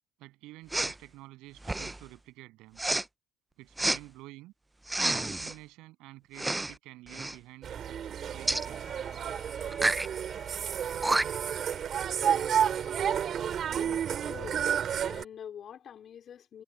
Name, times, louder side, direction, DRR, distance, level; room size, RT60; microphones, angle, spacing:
voice 1, 0.2-2.8 3.6-4.5 5.1-8.0 8.3-9.0, right 19 dB, 75° right, 7.8 m, -49 dB
Respiratory sounds, 0.7-1.0 1.6-2.0 2.8-3.0 3.8-4.0 4.9-5.5 6.3-6.7 7.1-7.4 8.5-8.7 9.7-10.1 10.7-10.8 11.0-11.5, right 2 dB, 10° right, 0.5 m, -29 dB
sound 1, 7.6-15.2, right 8 dB, 45° right, 3.1 m, -31 dB
sound 2, 8.3-13.4, left 2 dB, 15° left, 4.8 m, -53 dB
voice 2, 13.7-14.7 15.1-16.6, left 8 dB, 45° left, 3.8 m, -45 dB
supercardioid pair, 100°, 0 cm